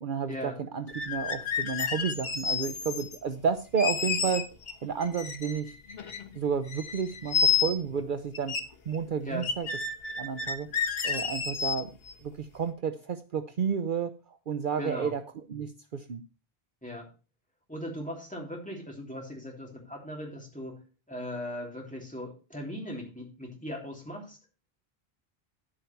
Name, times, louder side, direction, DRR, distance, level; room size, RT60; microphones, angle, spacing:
voice 1, 0.0-4.4 4.8-5.7 6.3-8.6 8.9-9.7 10.2-10.7 11.0-11.9 12.2-15.2 15.5-16.2, right 6 dB, 55° right, 9 dB, 0.8 m, -31 dB
sound 1, 0.9-3.2 3.8-4.7 5.0-6.4 6.6-8.0 8.3-8.6 8.9-9.0 9.4-12.1, left 6 dB, 75° left, 1.4 m, -30 dB
voice 2, 14.8-15.1 16.8-17.1 17.7-20.8 21.1-24.4, equal, 5° left, -1 dB, 3.2 m, -38 dB
10.5 x 8.8 x 4.5 m, 0.33 s
omnidirectional pair, 1.0 m